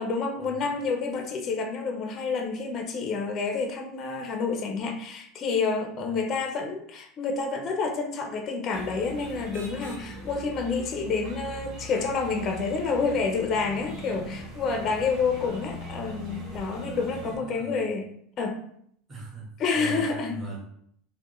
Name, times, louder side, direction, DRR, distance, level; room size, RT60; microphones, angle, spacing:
voice 1, 0.0-18.1 18.4-18.6 19.6-20.4, left 4 dB, 25° left, 3 dB, 0.4 m, -29 dB
sound 1, 8.7-17.4, equal, 40° right, 1.1 m, -41 dB
voice 2, 17.3-17.8 19.1-19.5 19.7-20.6, right 2 dB, 15° right, -5 dB, 1.0 m, -40 dB
4.5 x 2.0 x 3.0 m, 0.67 s
supercardioid pair, 165°, 0 cm